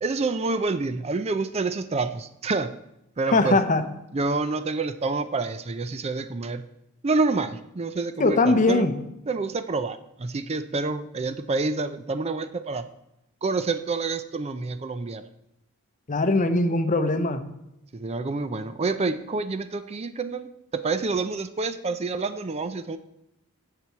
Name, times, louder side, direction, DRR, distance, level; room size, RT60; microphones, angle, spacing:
voice 1, 0.0-2.7 3.2-3.6 4.1-6.6 7.0-8.9 9.3-12.9 13.4-15.2 17.9-20.5 20.7-23.0, right 3 dB, 30° right, 12 dB, 0.4 m, -28 dB
voice 2, 3.3-3.8 8.2-9.0 16.1-17.4, left 2 dB, 35° left, 10 dB, 0.7 m, -21 dB
7.4 x 6.8 x 8.1 m, 0.84 s
head